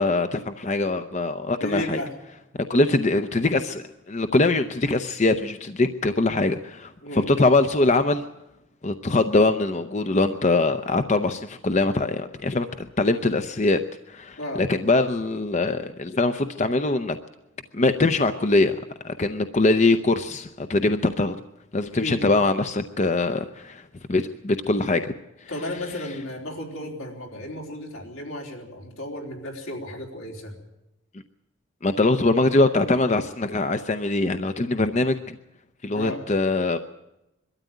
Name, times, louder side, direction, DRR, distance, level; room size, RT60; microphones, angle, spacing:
voice 1, 0.0-2.0 2.7-8.2 8.8-13.8 14.1-17.2 17.7-18.8 19.0-21.4 21.7-23.8 24.1-25.1 25.4-25.5 31.8-35.4 35.8-36.8, left 2 dB, 35° left, 9 dB, 0.6 m, -22 dB
voice 2, 1.6-2.1 7.0-7.3 14.4-14.6 21.9-22.2 25.5-30.5 35.9-36.2, left 1 dB, 85° left, -1 dB, 3.9 m, -33 dB
22.0 x 13.0 x 9.1 m, 0.94 s
head